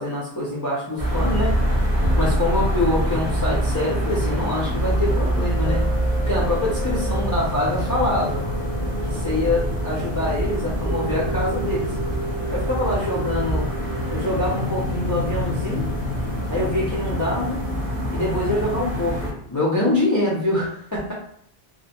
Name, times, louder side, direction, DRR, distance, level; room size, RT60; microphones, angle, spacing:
voice 1, 0.0-1.6 2.2-5.8 6.2-8.4 9.1-11.9 12.5-13.7 14.1-15.8 16.5-17.6 18.1-21.1, left 1 dB, 30° left, -7 dB, 0.3 m, -25 dB
sound 1, 1.0-19.3, equal, 40° right, 0.6 m, -25 dB
sound 2, 5.7-16.0 16.5-16.6, right 2 dB, 85° right, 0.9 m, -35 dB
2.3 x 2.0 x 2.8 m, 0.68 s
omnidirectional pair, 1.1 m